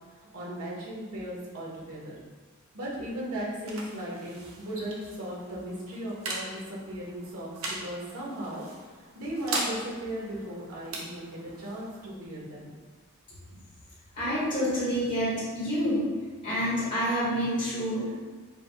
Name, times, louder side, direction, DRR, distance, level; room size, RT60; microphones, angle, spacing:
voice 1, 0.3-2.2 2.7-8.6 9.1-12.7, right 1 dB, 85° right, -5 dB, 1.4 m, -37 dB
sound 1, 3.0-14.2, right 2 dB, 70° right, 0.9 m, -40 dB
voice 2, 14.1-16.1 16.4-18.1, equal, 35° left, -10 dB, 1.4 m, -28 dB
4.8 x 2.4 x 4.7 m, 1.4 s
head